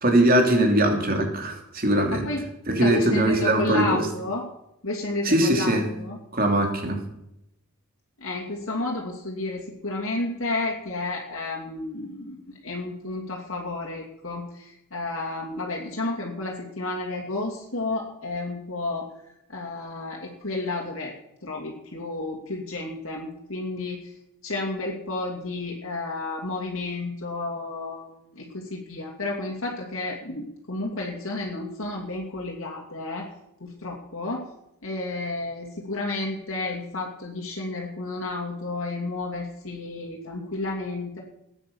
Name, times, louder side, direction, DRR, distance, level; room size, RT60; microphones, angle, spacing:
voice 1, 0.0-2.3 2.7-4.0 5.2-5.8 6.3-7.0, right 1 dB, 40° right, 3 dB, 3.0 m, -21 dB
voice 2, 2.1-2.4 2.8-4.4 4.8-6.2 8.2-19.1 19.5-21.1 21.4-24.2 24.4-33.3 33.6-34.5 34.8-41.2, left 2 dB, 65° left, -1 dB, 2.7 m, -31 dB
17.0 x 9.9 x 7.2 m, 0.82 s
head